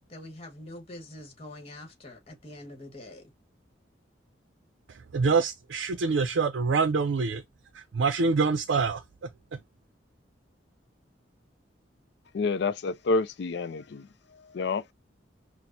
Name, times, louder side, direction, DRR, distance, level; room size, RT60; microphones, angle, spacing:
voice 1, 0.0-3.3, left 1 dB, 35° left, 1.2 m, -45 dB
voice 2, 4.9-7.4 7.7-9.0 9.5-9.6, right 4 dB, 80° right, 0.5 m, -26 dB
voice 3, 12.3-14.1 14.5-14.9, left 3 dB, 60° left, 0.4 m, -28 dB
5.9 x 2.0 x 2.6 m
head